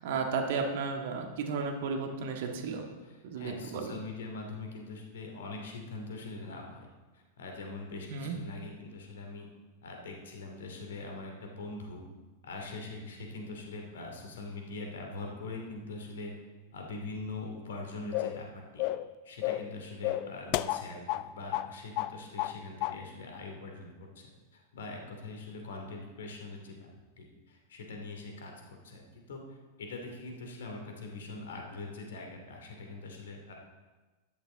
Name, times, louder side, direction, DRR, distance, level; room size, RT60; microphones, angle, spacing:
voice 1, 0.0-2.9 3.2-4.0 8.1-8.4, right 5 dB, 55° right, 3 dB, 1.7 m, -33 dB
voice 2, 3.0-6.9 7.1-9.5 9.8-12.0 12.4-16.3 16.7-18.9 19.2-26.9 27.2-29.0 29.3-33.5, left 3 dB, 60° left, 2 dB, 2.5 m, -43 dB
sound 1, 18.1-18.4 18.8-19.1 19.4-19.7 20.0-21.3 21.5-21.7 22.0-22.6 22.8-23.0, left 16 dB, 45° left, 0.4 m, -32 dB
13.5 x 11.0 x 3.8 m, 1.2 s
figure-of-eight pair, 90°, 0 cm